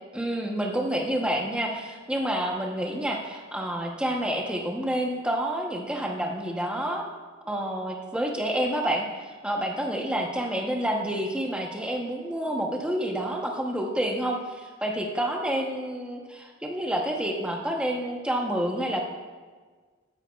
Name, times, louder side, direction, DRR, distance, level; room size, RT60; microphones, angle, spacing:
voice 1, 0.1-7.1 7.4-19.0, right 1 dB, 5° right, 0 dB, 0.9 m, -29 dB
14.5 x 8.8 x 2.4 m, 1.5 s
head